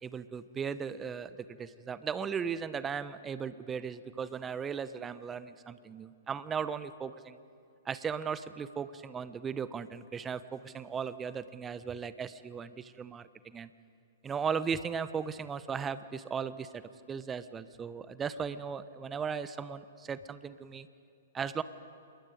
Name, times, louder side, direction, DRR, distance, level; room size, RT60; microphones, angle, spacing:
voice 1, 0.0-7.4 7.8-13.7 14.2-16.8 17.1-20.9 21.3-21.6, right 6 dB, 15° right, 15 dB, 0.8 m, -37 dB
27.0 x 22.0 x 5.2 m, 2.5 s
figure-of-eight pair, 115°, 0 cm